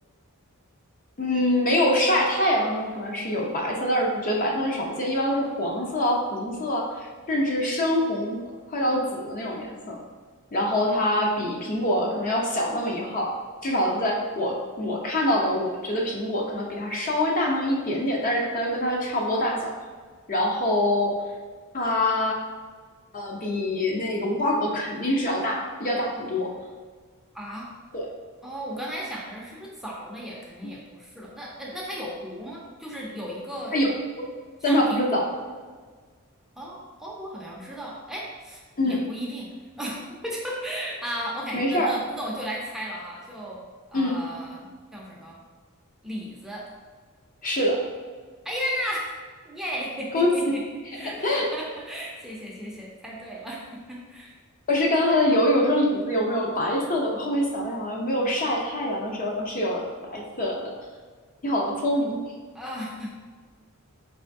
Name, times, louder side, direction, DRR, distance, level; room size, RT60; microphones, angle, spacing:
voice 1, 1.2-8.4 8.7-10.0 10.5-13.3 13.6-19.7 20.3-21.2 21.7-22.3 23.1-26.5 27.9-28.1 33.7-33.9 34.2-34.3 34.6-35.2 38.8-39.0 41.5-41.9 43.9-44.2 47.4-47.8 50.1-50.3 51.0-51.5 54.7-60.7 61.4-62.2, left 1 dB, 40° left, -1 dB, 0.6 m, -25 dB
voice 2, 27.3-27.7 28.4-33.8 34.7-35.2 36.6-39.5 39.8-43.6 43.9-45.4 46.0-46.7 48.4-49.1 49.4-50.6 50.9-54.3 62.5-63.1, equal, ahead, -4 dB, 0.6 m, -35 dB
4.8 x 3.4 x 2.6 m, 1.5 s
head